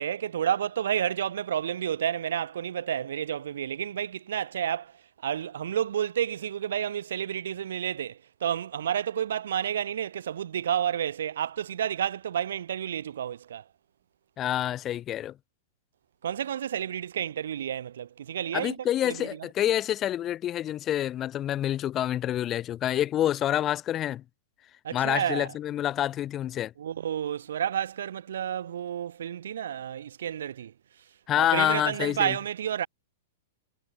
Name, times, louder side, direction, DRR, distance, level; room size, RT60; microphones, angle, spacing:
voice 1, 0.0-4.9 5.2-13.6 16.2-18.8 19.0-19.5 24.8-25.5 26.8-30.7 31.3-32.9, right 9 dB, 75° right, 1.4 m, -30 dB
voice 2, 14.4-15.3 18.5-24.2 24.9-26.7 31.3-32.3, left 12 dB, 30° left, 1.5 m, -27 dB
hypercardioid pair, 115°, 0 cm